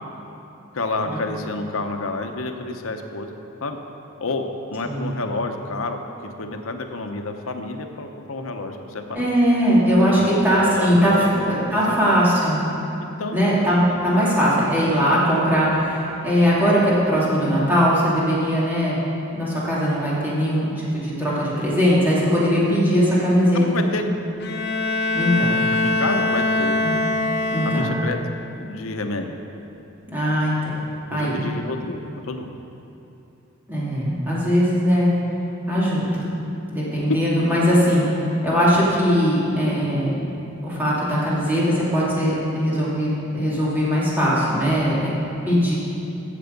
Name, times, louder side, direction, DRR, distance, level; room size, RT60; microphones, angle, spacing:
voice 1, 0.7-3.3 3.6-3.8 4.2-9.3 10.1-12.2 13.2-13.4 23.5-24.0 25.8-26.8 27.6-28.2 28.6-29.4 31.1-32.0 32.2-32.5, left 2 dB, 80° left, 5 dB, 0.9 m, -29 dB
voice 2, 9.1-11.1 11.4-12.6 13.3-19.0 19.3-23.9 25.1-25.6 26.8-27.0 27.5-28.0 30.1-30.7 31.1-31.5 33.7-35.1 35.7-36.2 36.7-38.1 38.4-40.1 40.6-45.1 45.4-45.8, equal, 10° right, -8 dB, 2.8 m, -20 dB
Bowed string instrument, 24.4-28.4, left 2 dB, 50° left, 0.7 m, -23 dB
15.0 x 6.9 x 5.2 m, 2.9 s
head